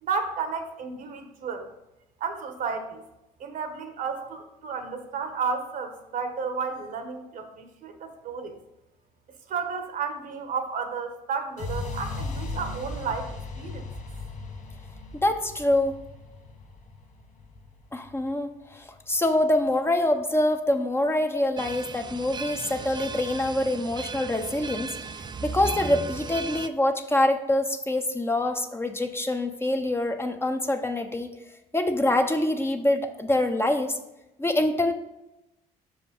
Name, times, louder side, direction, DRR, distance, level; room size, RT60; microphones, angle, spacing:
voice 1, 0.0-1.7 2.2-3.0 3.4-8.6 9.5-13.9, right 5 dB, 65° right, 7 dB, 1.1 m, -32 dB
sound 1, 11.6-19.5, left 3 dB, 55° left, 1.0 m, -38 dB
voice 2, 15.2-16.0 17.9-24.9 25.4-31.3 31.7-34.0 34.4-34.9, left 1 dB, 15° left, 5 dB, 0.8 m, -25 dB
sound 2, 21.6-26.7, right 4 dB, 30° right, 0.4 m, -36 dB
6.0 x 5.1 x 5.2 m, 0.93 s
supercardioid pair, 75°, 15 cm